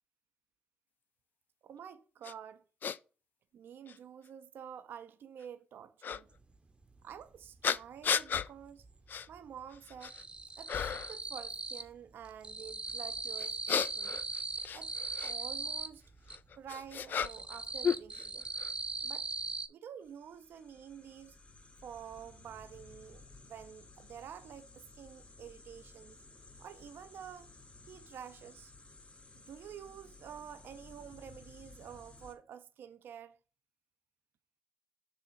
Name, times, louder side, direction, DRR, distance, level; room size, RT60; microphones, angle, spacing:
voice 1, 1.6-2.6 3.5-6.3 7.0-8.9 9.3-10.1 10.6-14.2 14.7-14.9 15.2-16.0 16.5-18.5 19.0-19.3 19.7-21.4 21.8-26.2 26.6-27.5 27.9-28.7 29.3-33.4, right 8 dB, 75° right, 0.4 m, -49 dB
sound 1, 2.2-2.3 2.8-3.0 3.9-4.0 6.0-6.2 7.6-8.5 9.1-9.3 9.7-10.2 10.7-11.2 13.4-15.3 16.3-17.6 17.8-18.7, left 7 dB, 60° left, 0.3 m, -34 dB
sound 2, 6.4-6.5 6.8-8.1 8.4-9.1 9.3-12.0 12.2-16.4 16.8-19.7, right 3 dB, 30° right, 0.7 m, -40 dB
sound 3, 20.0-32.3, left 3 dB, 35° left, 2.2 m, -56 dB
6.9 x 2.8 x 5.6 m
cardioid pair, 60°, 4 cm